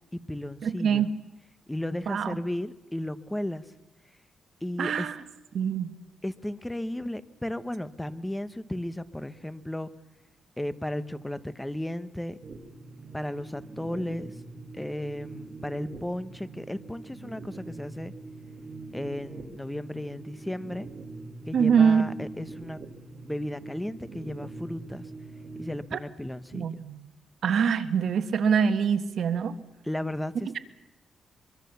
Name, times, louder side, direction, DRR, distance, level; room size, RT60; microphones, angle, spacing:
voice 1, 0.1-1.1 1.7-3.7 4.6-5.1 6.2-9.9 10.6-12.4 13.1-14.3 14.7-18.1 18.9-20.9 21.5-22.8 23.2-25.1 25.6-26.8 29.8-30.6, left 1 dB, 5° left, 13 dB, 1.1 m, -34 dB
voice 2, 0.6-1.1 2.1-2.4 4.8-5.2 5.5-5.9 21.5-22.1 25.9-26.0 26.5-27.0 27.4-29.5, right 7 dB, 65° right, 10 dB, 1.5 m, -24 dB
sound 1, 12.4-25.8, right 3 dB, 45° right, 2.2 m, -43 dB
23.5 x 23.5 x 6.9 m, 0.99 s
cardioid pair, 110°, 0 cm